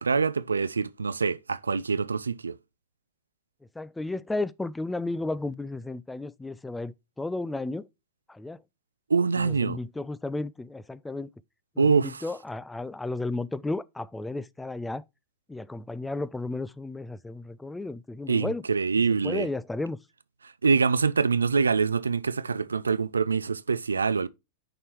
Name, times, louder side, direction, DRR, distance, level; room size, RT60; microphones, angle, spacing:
voice 1, 0.0-2.6 9.1-9.8 11.8-12.2 18.3-19.5 20.6-24.3, right 5 dB, 85° right, 0.4 m, -25 dB
voice 2, 3.8-7.9 8.3-8.6 9.4-11.3 11.8-15.0 15.5-18.6 19.2-20.0, left 2 dB, 5° left, 0.4 m, -33 dB
6.5 x 4.5 x 4.5 m
hypercardioid pair, 105°, 0 cm